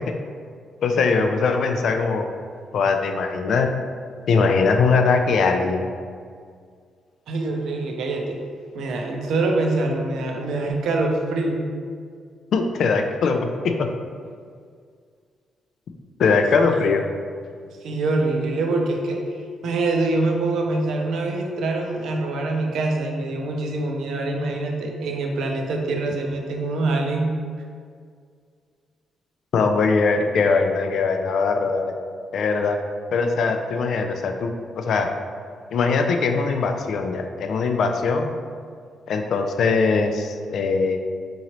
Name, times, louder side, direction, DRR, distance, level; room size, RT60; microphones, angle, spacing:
voice 1, 0.8-2.3 2.7-3.7 4.3-5.9 12.5-13.9 16.2-17.0 29.5-31.9 32.3-32.8 33.1-35.1 35.7-38.3 39.1-41.0, left 4 dB, 60° left, 5 dB, 0.3 m, -21 dB
voice 2, 7.3-8.4 8.7-11.6 16.7-16.8 17.8-19.2 19.6-27.3, right 2 dB, 75° right, 1 dB, 0.5 m, -24 dB
3.8 x 2.9 x 2.9 m, 2.1 s
cardioid pair, 135°, 0 cm